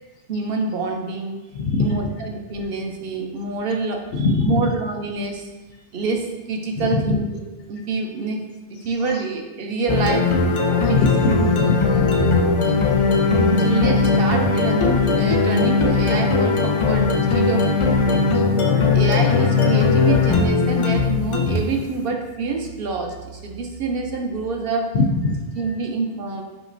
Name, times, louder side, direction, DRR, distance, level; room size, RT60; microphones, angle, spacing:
voice 1, 0.3-1.4 1.8-5.5 5.9-7.4 7.7-10.3 10.7-11.4 12.2-12.5 13.5-18.2 18.8-24.9 25.5-26.4, right 4 dB, 65° right, 2 dB, 0.8 m, -26 dB
voice 2, 1.6-1.9 4.2-4.5 10.9-12.1 24.9-25.4, left 3 dB, 75° left, 3 dB, 0.8 m, -21 dB
sound 1, 9.9-21.8, left 4 dB, 45° left, 0.4 m, -19 dB
4.9 x 3.0 x 2.5 m, 1.2 s
omnidirectional pair, 1.0 m